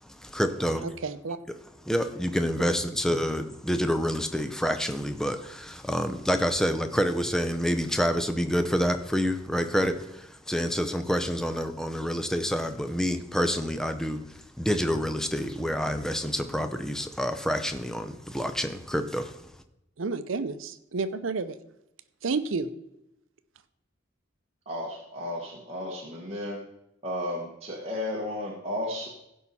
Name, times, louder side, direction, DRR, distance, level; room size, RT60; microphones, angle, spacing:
voice 1, 0.0-0.9 1.8-19.5, equal, 5° left, 0.6 m, -28 dB
voice 2, 0.8-1.4 20.0-21.6 22.2-22.7, right 4 dB, 75° right, 0.6 m, -30 dB
voice 3, 24.7-26.6 27.0-29.1, left 1 dB, 30° right, 1.4 m, -33 dB
16.0 x 5.5 x 4.2 m
head